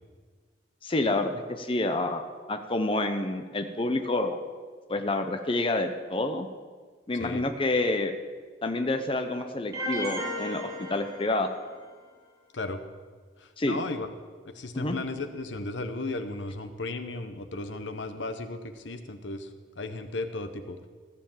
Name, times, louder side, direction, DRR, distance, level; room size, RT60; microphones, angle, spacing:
voice 1, 0.8-2.2 2.5-4.4 4.9-6.5 7.1-8.1 8.6-11.5 13.6-13.8 14.7-15.0, left 2 dB, 30° left, 6 dB, 0.7 m, -28 dB
sound 1, 9.7-11.8, equal, 20° right, 2.0 m, -35 dB
voice 2, 13.6-14.1 14.5-19.5 19.8-20.9, left 2 dB, 75° left, 8 dB, 1.0 m, -35 dB
15.0 x 7.1 x 7.3 m, 1.5 s
head